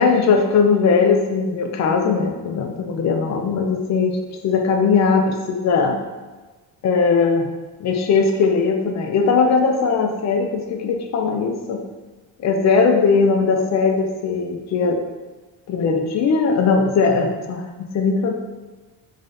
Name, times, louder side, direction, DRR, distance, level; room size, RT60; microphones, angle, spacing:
voice 1, 0.0-4.2 4.4-6.0 6.8-7.5 7.8-11.8 12.4-15.0 15.7-18.4, left 5 dB, 45° left, 3 dB, 0.4 m, -19 dB
3.8 x 3.1 x 2.7 m, 1.3 s
cardioid pair, 160°, 42 cm